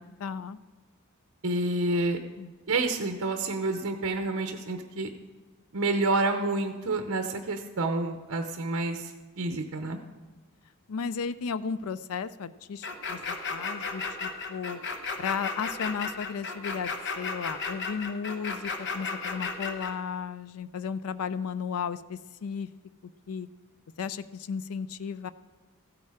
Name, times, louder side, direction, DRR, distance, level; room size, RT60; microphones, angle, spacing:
voice 1, 0.2-0.6 2.4-2.5 10.9-14.8 15.2-22.7 23.3-23.5 24.0-25.3, left 6 dB, 75° left, 15 dB, 0.4 m, -34 dB
voice 2, 1.4-2.2 2.7-5.1 5.7-9.1 9.4-10.0, right 2 dB, 60° right, 6 dB, 0.8 m, -28 dB
sound 1, 12.8-19.9, left 4 dB, 50° left, 1.0 m, -34 dB
15.0 x 8.7 x 4.8 m, 1.3 s
head